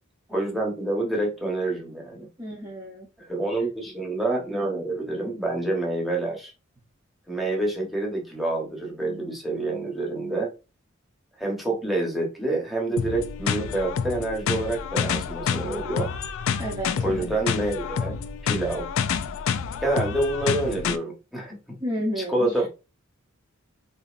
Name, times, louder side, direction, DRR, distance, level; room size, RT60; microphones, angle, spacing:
voice 1, 0.3-2.3 3.2-6.5 7.3-10.5 11.4-16.1 17.0-18.2 18.4-18.9 19.8-21.6 22.2-22.7, right 2 dB, ahead, -2 dB, 1.0 m, -27 dB
voice 2, 2.4-3.1 16.6-17.3 21.8-22.7, equal, 15° right, -3 dB, 0.7 m, -31 dB
sound 1, 13.0-21.0, left 7 dB, 65° left, 0.4 m, -28 dB
4.0 x 2.7 x 2.5 m, 0.29 s
head